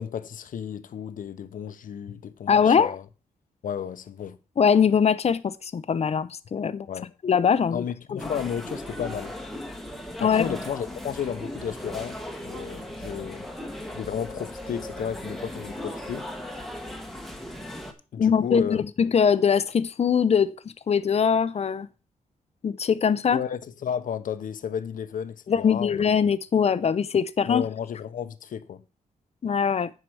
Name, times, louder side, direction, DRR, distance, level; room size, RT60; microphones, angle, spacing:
voice 1, 0.0-3.0 3.6-4.4 6.9-7.1 7.7-9.3 10.2-13.5 13.9-16.3 18.1-18.8 23.3-26.1 27.5-28.8, left 8 dB, 75° left, 0.9 m, -33 dB
voice 2, 2.5-3.0 4.6-6.9 7.2-7.8 10.2-10.4 18.2-20.5 20.9-21.9 22.6-23.4 25.5-27.6 29.4-29.9, left 7 dB, 50° left, 0.7 m, -22 dB
sound 1, 8.2-17.9, left 1 dB, ahead, 1.7 m, -37 dB
9.7 x 4.9 x 6.2 m
cardioid pair, 90°, 14 cm